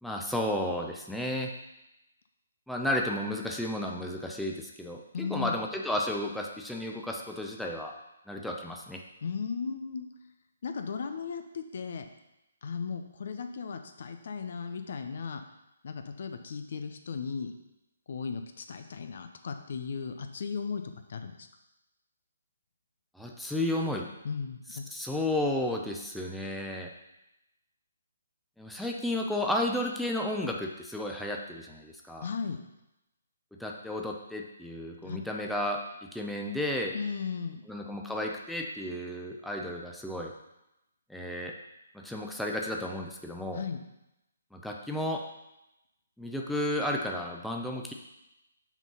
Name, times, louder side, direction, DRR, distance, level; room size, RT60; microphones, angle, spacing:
voice 1, 0.0-1.5 2.7-7.9 8.3-9.0 23.1-24.1 24.9-26.9 28.6-32.3 33.5-37.0 37.7-40.3 41.1-41.5 41.9-43.6 44.5-45.2 46.2-47.9, left 1 dB, ahead, 0 dB, 0.6 m, -33 dB
voice 2, 5.1-5.6 9.2-10.1 10.6-12.1 12.6-15.4 15.8-17.5 18.1-20.8 21.1-21.5 24.2-24.8 32.2-32.6 35.0-35.2 36.9-37.6 43.5-43.8, left 5 dB, 60° left, 7 dB, 0.7 m, -36 dB
6.0 x 4.5 x 5.5 m, 0.92 s
figure-of-eight pair, 140°, 0 cm